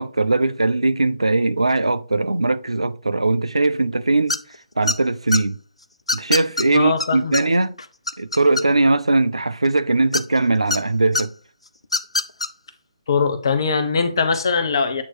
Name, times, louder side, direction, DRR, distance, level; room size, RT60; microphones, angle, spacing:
voice 1, 0.0-4.4 4.8-5.6 6.1-7.8 8.2-11.3, right 2 dB, 80° right, 0.5 m, -20 dB
sound 1, 4.3-4.6 4.9-5.4 6.1-6.6 7.0-7.1 7.3-7.4 7.8-8.9 10.1-10.8 11.1-11.2 11.8-12.5, left 2 dB, 75° left, 0.5 m, -22 dB
voice 2, 6.7-7.4 13.1-15.0, left 5 dB, 50° left, 1.0 m, -21 dB
8.7 x 3.0 x 4.3 m
figure-of-eight pair, 140°, 3 cm